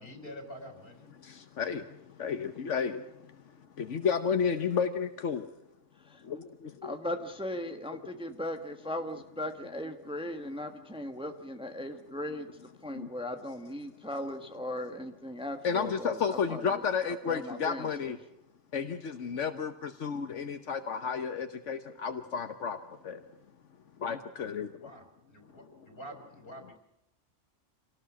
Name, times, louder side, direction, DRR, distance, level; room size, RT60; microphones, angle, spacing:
voice 1, 0.0-1.1 24.7-26.8, equal, 50° left, 5 dB, 4.4 m, -47 dB
voice 2, 1.2-3.4 3.8-5.4 6.2-7.0 12.9-13.1 15.6-18.2 18.7-22.8 23.0-23.2 24.0-24.9, left 6 dB, 80° left, 8 dB, 1.4 m, -32 dB
voice 3, 6.8-12.5 12.8-18.1, left 1 dB, 5° right, 6 dB, 1.3 m, -38 dB
26.5 x 18.5 x 6.2 m, 0.83 s
omnidirectional pair, 1.2 m